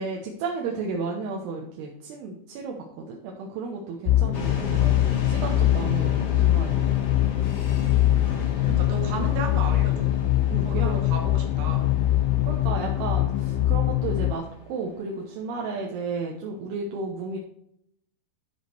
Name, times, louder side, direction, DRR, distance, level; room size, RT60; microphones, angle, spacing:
voice 1, 0.0-6.8 8.7-8.8 10.5-11.0 12.5-14.4 14.7-17.4, right 4 dB, 80° right, -1 dB, 3.1 m, -33 dB
sound 1, 4.1-14.3, left 14 dB, 80° left, 2.4 m, -23 dB
sound 2, 4.3-15.8, left 2 dB, 50° left, 2.1 m, -37 dB
voice 2, 7.5-8.3 8.6-10.2 10.6-12.0, right 4 dB, 50° right, 2 dB, 2.4 m, -35 dB
13.0 x 5.1 x 4.5 m, 0.74 s
omnidirectional pair, 4.7 m